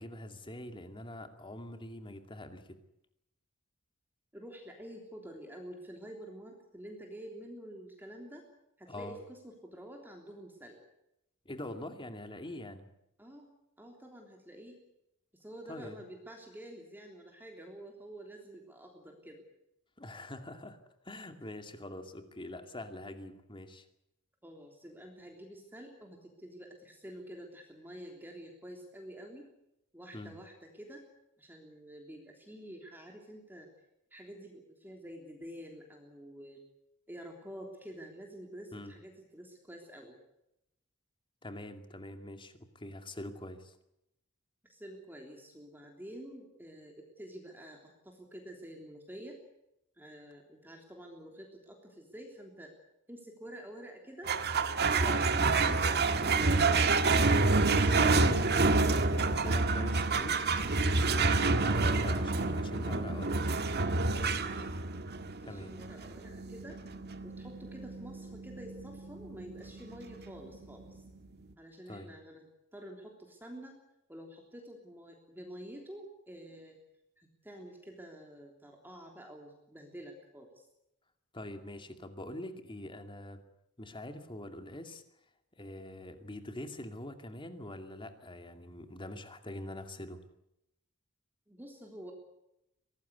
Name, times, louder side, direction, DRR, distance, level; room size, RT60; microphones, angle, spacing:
voice 1, 0.0-2.8 8.9-9.2 11.4-12.9 15.7-16.0 20.0-20.8 21.0-23.8 30.1-30.3 38.7-38.9 41.4-43.8 55.0-55.3 58.0-58.5 58.7-60.4 61.1-63.3 65.4-65.7 71.9-72.1 81.3-83.4 83.8-85.0 85.5-90.2, left 1 dB, 25° left, 7 dB, 2.5 m, -44 dB
voice 2, 4.3-8.5 8.8-10.8 13.2-13.5 13.8-14.8 15.3-19.4 24.4-29.5 29.9-31.1 31.4-33.7 34.1-36.6 37.1-40.2 44.6-49.4 50.0-52.7 53.1-54.3 54.9-56.8 64.5-64.8 65.4-66.8 67.2-71.0 71.6-73.8 74.1-76.8 77.2-80.6 91.5-92.1, equal, 10° right, 1 dB, 3.3 m, -48 dB
sound 1, 54.3-71.0, right 3 dB, 50° right, 1.9 m, -28 dB
24.0 x 18.5 x 8.2 m, 0.85 s
head